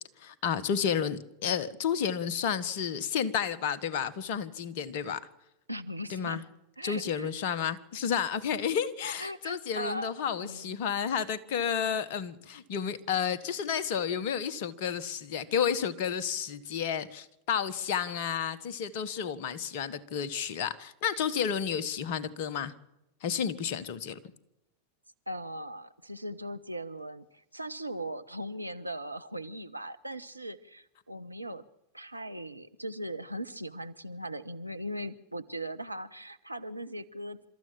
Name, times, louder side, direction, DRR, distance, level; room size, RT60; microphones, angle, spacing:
voice 1, 0.2-5.3 6.1-6.4 6.8-22.7 23.2-24.2, left 7 dB, 50° left, 15 dB, 1.5 m, -31 dB
voice 2, 5.7-6.4 6.8-7.3 9.2-10.8 25.3-31.6 31.9-37.4, right 1 dB, 85° right, 10 dB, 0.9 m, -39 dB
29.5 x 14.0 x 7.5 m, 0.89 s
figure-of-eight pair, 90°, 0 cm